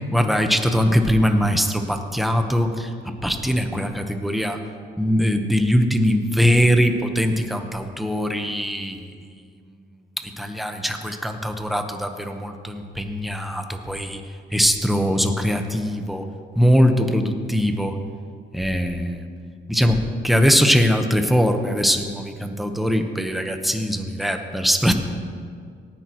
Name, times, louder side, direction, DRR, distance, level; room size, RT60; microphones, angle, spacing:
voice 1, 0.1-2.9 3.2-4.6 5.0-9.0 10.4-14.2 14.5-16.2 16.6-18.0 18.5-19.2 19.7-24.9, equal, ahead, 5 dB, 1.1 m, -21 dB
18.0 x 10.5 x 3.1 m, 2.1 s
cardioid pair, 90°, 20 cm